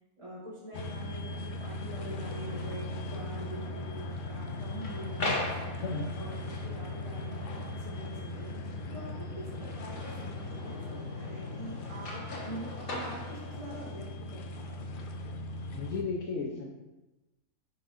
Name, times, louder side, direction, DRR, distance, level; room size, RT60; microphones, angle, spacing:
voice 1, 0.2-5.8 6.2-15.4, equal, 25° right, -9 dB, 1.3 m, -45 dB
sound 1, 0.7-16.0, left 1 dB, 85° left, 0.4 m, -39 dB
sound 2, 2.1-13.9, left 2 dB, 45° left, 1.1 m, -42 dB
voice 2, 5.8-6.1 15.7-16.7, left 4 dB, 65° left, -2 dB, 1.1 m, -34 dB
10.0 x 4.1 x 2.5 m, 1.0 s
omnidirectional pair, 1.5 m